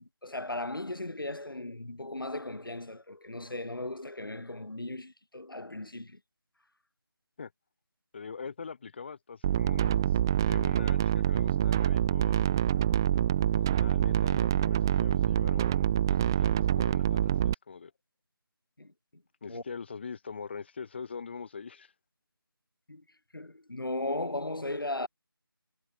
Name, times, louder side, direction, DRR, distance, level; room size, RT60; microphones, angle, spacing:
voice 1, 0.0-6.2 18.8-18.9 19.5-19.6 22.9-23.0 23.3-25.1, left 2 dB, 65° left, 5.2 m, -37 dB
voice 2, 8.1-10.2 10.4-12.6 13.5-17.9 19.4-21.9, left 5 dB, 30° left, 6.2 m, -43 dB
sound 1, 9.4-17.5, right 11 dB, 10° right, 0.9 m, -26 dB
figure-of-eight pair, 165°, 12 cm